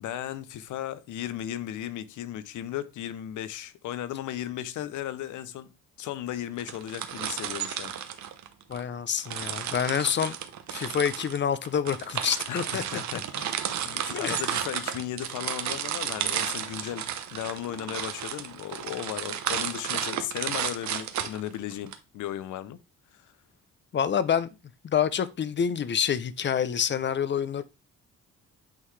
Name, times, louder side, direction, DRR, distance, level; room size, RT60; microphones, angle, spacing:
voice 1, 0.0-5.7 6.0-7.9 12.5-22.8 23.1-23.3, left 11 dB, 80° left, 0.7 m, -36 dB
sound 1, 6.6-8.8 9.3-21.9, right 9 dB, 65° right, 0.8 m, -33 dB
voice 2, 8.7-10.4 10.7-12.8 14.1-14.5 23.9-24.5 24.8-27.6, left 8 dB, 40° left, 0.6 m, -27 dB
8.6 x 3.8 x 3.2 m
cardioid pair, 90°, 30 cm